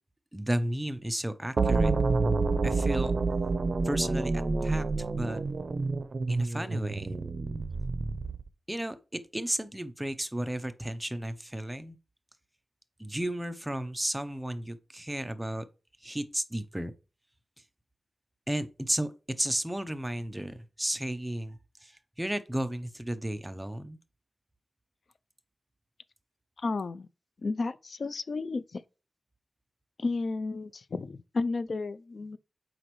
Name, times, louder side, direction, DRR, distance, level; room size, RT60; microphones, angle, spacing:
voice 1, 0.3-1.9 2.6-3.2 3.8-4.8 5.1-5.4 6.3-7.2 8.7-12.0 13.0-15.7 16.0-16.9 18.5-24.0, right 1 dB, 10° right, 0.7 m, -33 dB
sound 1, 1.6-8.5, right 3 dB, 55° right, 0.7 m, -28 dB
voice 2, 26.6-27.1 27.4-28.8 30.0-32.4, left 3 dB, 65° left, 0.4 m, -32 dB
7.8 x 5.1 x 3.1 m
wide cardioid pair, 90°, 0 cm